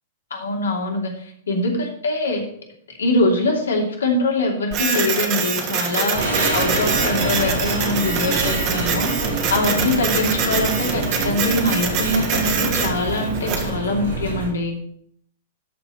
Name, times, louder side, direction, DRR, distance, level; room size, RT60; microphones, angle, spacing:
voice 1, 0.3-2.4 3.0-14.8, left 2 dB, 70° left, 0 dB, 2.8 m, -23 dB
Printer, 4.7-13.7, right 6 dB, 40° right, 1.9 m, -25 dB
sound 1, 6.1-14.5, right 2 dB, 75° right, 4.6 m, -26 dB
13.0 x 5.3 x 5.5 m, 0.67 s
figure-of-eight pair, 100°, 0 cm